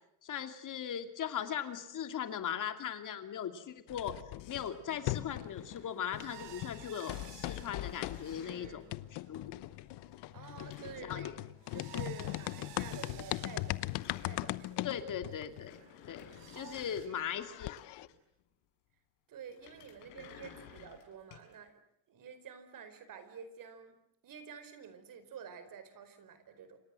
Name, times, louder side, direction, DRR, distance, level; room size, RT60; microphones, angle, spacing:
voice 1, 0.2-4.2 4.5-8.8 9.1-9.5 11.0-11.3 14.8-15.8 16.1-17.8, left 9 dB, 45° left, 7 dB, 2.6 m, -39 dB
sound 1, 3.9-5.9 6.1-16.6 17.0-17.1 17.3-18.1, left 18 dB, 75° left, 1.0 m, -40 dB
sound 2, 4.4-6.5 6.8-7.4 7.6-8.8 10.1-12.3 12.5-12.6 12.9-13.0 13.2-14.9 15.3-18.4 19.5-21.5, left 8 dB, 90° left, 6.6 m, -56 dB
sound 3, 5.4-17.1, right 12 dB, 80° right, 4.0 m, -56 dB
voice 2, 8.4-8.9 10.3-11.3 11.7-13.9 14.2-15.0 16.5-16.8 17.1-17.7 19.3-21.8 22.1-24.0 24.2-26.8, right 7 dB, 50° right, 11 dB, 4.8 m, -50 dB
28.0 x 26.0 x 7.7 m, 0.77 s
cardioid pair, 125°, 42 cm